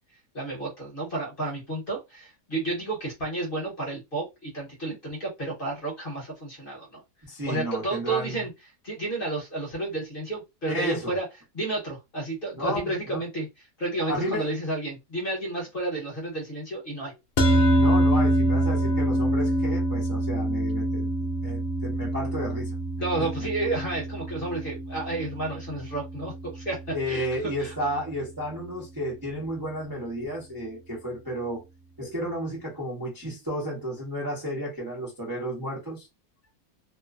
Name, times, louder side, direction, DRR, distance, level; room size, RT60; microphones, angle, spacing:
voice 1, 0.3-7.0 7.4-8.5 8.8-11.3 11.5-13.5 13.8-17.1 23.0-27.7, right 2 dB, 40° left, 1.1 m, -31 dB
voice 2, 7.3-8.4 10.7-11.2 12.5-13.2 14.1-14.5 17.7-21.1 21.4-22.7 23.2-23.3 26.9-31.6 32.0-36.1, equal, 20° right, 0.6 m, -32 dB
sound 1, 17.4-27.8, right 1 dB, 70° left, 0.7 m, -26 dB
2.9 x 2.1 x 2.4 m
omnidirectional pair, 1.7 m